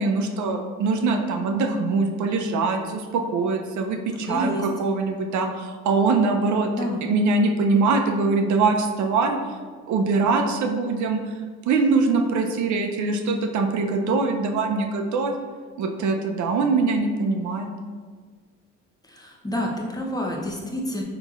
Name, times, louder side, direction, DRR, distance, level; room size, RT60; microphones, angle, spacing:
voice 1, 0.0-9.4 9.9-11.3 11.7-15.3 15.8-17.7, right 3 dB, 75° right, 4 dB, 0.5 m, -23 dB
voice 2, 4.1-4.7 6.7-7.1 19.0-21.0, equal, 15° left, -1 dB, 0.7 m, -29 dB
5.4 x 2.9 x 2.3 m, 1.5 s
cardioid pair, 90°, 30 cm